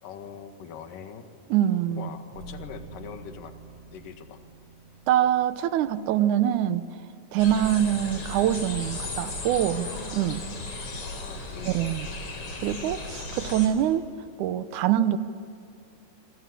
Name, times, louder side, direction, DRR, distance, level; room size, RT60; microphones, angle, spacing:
voice 1, 0.0-1.2 1.9-3.6 3.9-4.4 10.9-11.9, left 7 dB, 60° left, 6 dB, 3.2 m, -42 dB
voice 2, 1.5-2.1 5.1-6.9 7.3-10.4 11.7-12.1 12.6-14.0 14.4-15.2, right 11 dB, 75° right, 12 dB, 1.9 m, -24 dB
sound 1, 2.3-6.5, right 3 dB, 40° right, 7.6 m, -47 dB
sound 2, 7.4-13.7, left 2 dB, 35° left, 4.8 m, -36 dB
27.0 x 26.0 x 8.4 m, 2.5 s
omnidirectional pair, 4.6 m